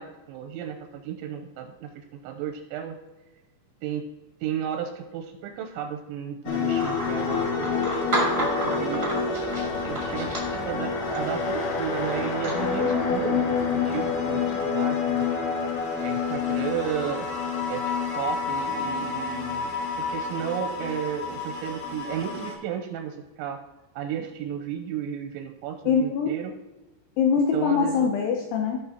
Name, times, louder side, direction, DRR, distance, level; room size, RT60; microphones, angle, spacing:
voice 1, 0.0-3.0 3.8-4.1 4.4-7.8 8.2-9.2 9.9-15.3 16.0-17.3 17.7-23.6 23.9-26.5 27.5-28.1, right 9 dB, 85° right, 4 dB, 2.9 m, -33 dB
sound 1, 6.5-22.5, left 5 dB, 65° left, 2.2 m, -28 dB
sound 2, 6.7-14.6, right 2 dB, 45° right, 1.0 m, -34 dB
voice 2, 25.9-26.3 27.2-28.8, left 6 dB, 90° left, 3 dB, 2.3 m, -23 dB
16.5 x 5.6 x 2.8 m, 1.1 s
omnidirectional pair, 5.7 m